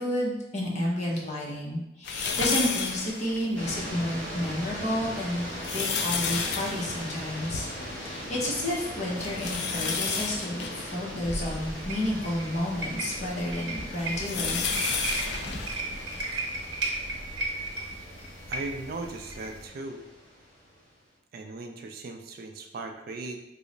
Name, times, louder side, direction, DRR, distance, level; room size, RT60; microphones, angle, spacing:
voice 1, 0.0-5.5 5.7-7.7 8.0-14.6, left 1 dB, 40° left, -4 dB, 0.7 m, -31 dB
sound 1, 2.0-3.9 4.4-4.5 5.3-8.3 8.5-8.6 9.2-12.2 12.8-16.7 17.4-17.5 18.8-18.9, left 5 dB, 65° left, 0.4 m, -32 dB
sound 2, 3.5-20.9, equal, 10° left, 1.3 m, -40 dB
sound 3, 11.2-19.7, right 2 dB, 75° right, 0.9 m, -35 dB
voice 2, 18.5-20.0 21.3-23.4, right 3 dB, 55° right, 5 dB, 0.3 m, -38 dB
3.0 x 2.0 x 3.8 m, 0.93 s
head